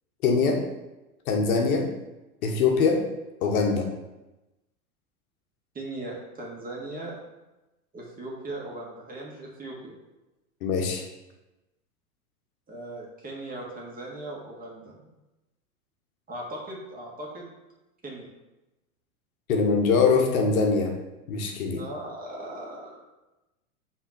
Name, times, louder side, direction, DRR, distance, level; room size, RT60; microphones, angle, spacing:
voice 1, 0.2-0.6 1.3-1.9 2.4-3.0 3.4-3.9 10.6-11.0 19.5-20.9 21.3-21.8, left 4 dB, 65° left, 1 dB, 1.3 m, -23 dB
voice 2, 5.7-7.2 7.9-10.0 12.7-15.1 16.3-17.5 18.0-18.3 21.7-23.0, right 1 dB, 20° right, -3 dB, 1.9 m, -38 dB
5.7 x 3.6 x 5.9 m, 1.0 s
hypercardioid pair, 95°, 45 cm